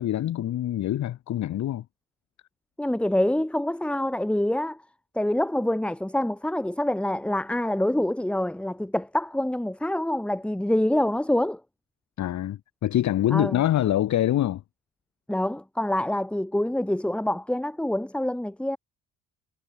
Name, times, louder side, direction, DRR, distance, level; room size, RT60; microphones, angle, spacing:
voice 1, 0.0-1.8 12.2-14.6, left 12 dB, 45° left, 0.7 m, -25 dB
voice 2, 2.8-4.8 5.1-11.6 13.3-13.6 15.3-18.8, left 1 dB, 5° left, 0.7 m, -26 dB
hypercardioid pair, 50°, 40 cm